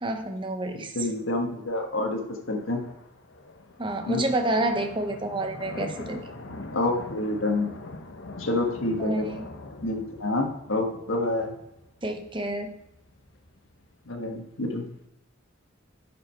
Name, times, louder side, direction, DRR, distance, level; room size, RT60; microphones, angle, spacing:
voice 1, 0.0-0.9 3.8-6.2 9.0-9.5 12.0-12.8, right 1 dB, 25° right, 5 dB, 0.8 m, -29 dB
voice 2, 0.7-2.2 2.5-2.8 4.0-4.2 6.7-7.8 8.4-9.3 9.8-11.5 14.1-14.8, left 2 dB, 90° left, 3 dB, 1.6 m, -28 dB
sound 1, 1.1-15.1, left 2 dB, 70° left, 1.0 m, -44 dB
11.0 x 5.2 x 4.4 m, 0.83 s
head